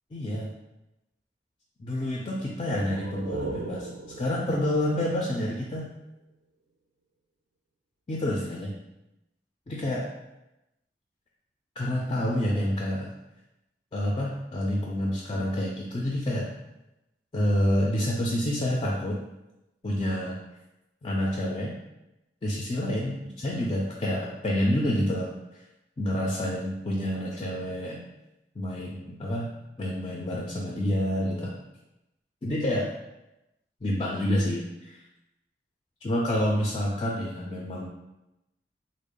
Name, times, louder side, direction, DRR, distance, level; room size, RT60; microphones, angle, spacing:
voice 1, 0.1-0.5 1.8-3.9 4.2-5.9 8.1-8.7 9.7-10.0 11.8-13.1 13.9-16.5 17.3-19.2 19.8-20.4 21.0-21.7 22.4-25.3 26.0-28.0 28.6-29.5 29.8-31.6 32.4-32.9 33.8-35.0 36.0-37.9, left 1 dB, 30° left, -3 dB, 0.3 m, -28 dB
sound 1, 2.6-6.2, right 3 dB, 70° right, 0.4 m, -39 dB
3.5 x 2.0 x 3.6 m, 0.93 s
head